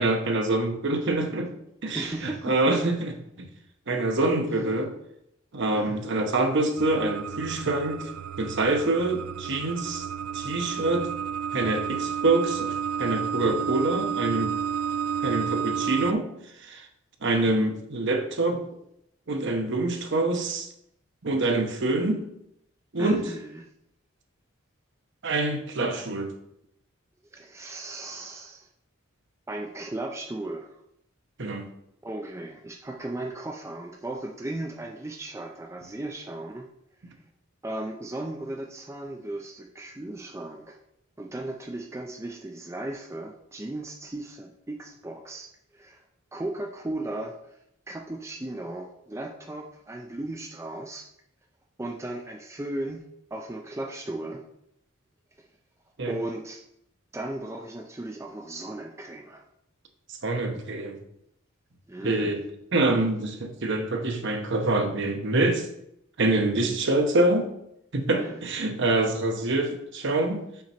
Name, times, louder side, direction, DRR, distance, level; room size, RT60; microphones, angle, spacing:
voice 1, 0.0-1.5 1.8-3.1 3.4-3.5 3.9-4.9 5.5-8.1 8.4-10.0 10.3-11.1 11.5-14.5 15.2-16.3 16.6-16.9 17.2-18.6 19.3-20.7 21.2-22.2 22.9-23.2 25.2-26.3 31.4-31.7 56.0-56.1 60.2-61.0 62.0-62.4 62.7-65.7 66.2-67.5 67.9-70.4, right 2 dB, 55° right, 5 dB, 0.9 m, -25 dB
voice 2, 1.9-2.8 4.5-4.6 5.7-6.0 23.0-23.7 27.3-28.7 29.5-30.8 32.0-36.7 37.6-40.8 41.2-46.0 46.3-47.4 47.9-51.1 51.8-53.0 53.3-54.4 56.1-56.6 57.1-59.4 61.9-62.4 68.1-68.4, right 1 dB, 15° right, 2 dB, 0.4 m, -36 dB
sound 1, 6.8-16.1, right 8 dB, 90° right, 0.3 m, -31 dB
5.8 x 5.2 x 4.4 m, 0.76 s
head